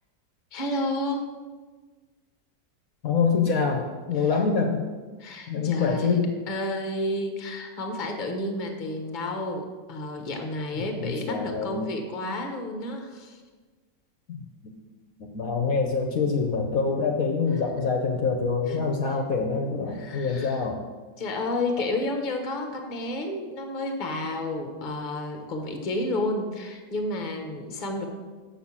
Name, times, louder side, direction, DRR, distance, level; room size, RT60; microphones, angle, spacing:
voice 1, 0.5-1.3 4.2-4.3 5.2-6.2 6.5-13.4 18.7-18.8 19.9-20.6 21.2-28.1, left 1 dB, 30° left, 4 dB, 1.0 m, -31 dB
voice 2, 3.0-4.8 5.5-6.3 10.7-11.9 14.3-14.5 15.2-20.8, left 5 dB, 60° left, 2 dB, 1.2 m, -25 dB
6.6 x 6.4 x 7.2 m, 1.4 s
omnidirectional pair, 1.9 m